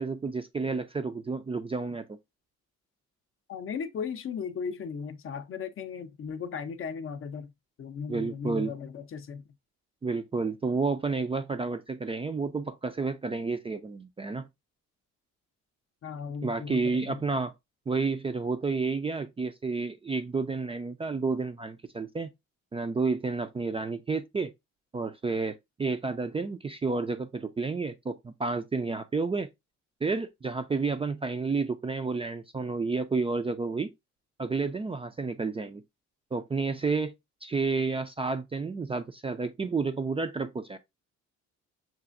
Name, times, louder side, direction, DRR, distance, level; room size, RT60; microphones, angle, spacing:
voice 1, 0.0-2.1 8.1-8.7 10.0-14.5 16.4-17.5 17.9-22.3 22.7-24.5 24.9-29.5 30.0-33.9 34.4-35.8 36.3-37.1 37.4-40.8, right 4 dB, 20° right, 0.3 m, -30 dB
voice 2, 3.5-7.5 7.8-9.4 16.0-17.2, left 6 dB, 45° left, 0.6 m, -36 dB
5.8 x 2.4 x 2.4 m
cardioid pair, 90°, 30 cm